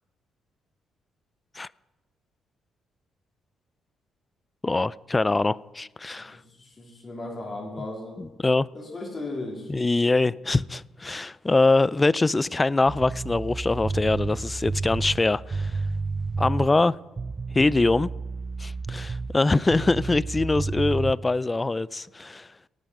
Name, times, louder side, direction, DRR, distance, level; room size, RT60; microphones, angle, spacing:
voice 1, 4.6-6.4 8.2-8.7 9.7-15.8 16.4-17.0 17.5-18.1 18.6-22.5, left 2 dB, 20° left, 0.3 m, -23 dB
voice 2, 6.2-8.2 8.7-9.7, left 2 dB, 35° left, 3.7 m, -36 dB
sound 1, 12.9-16.8 17.2-19.4 19.7-21.1, right 3 dB, 30° right, 0.6 m, -31 dB
17.5 x 9.2 x 5.4 m
cardioid pair, 90°, 0 cm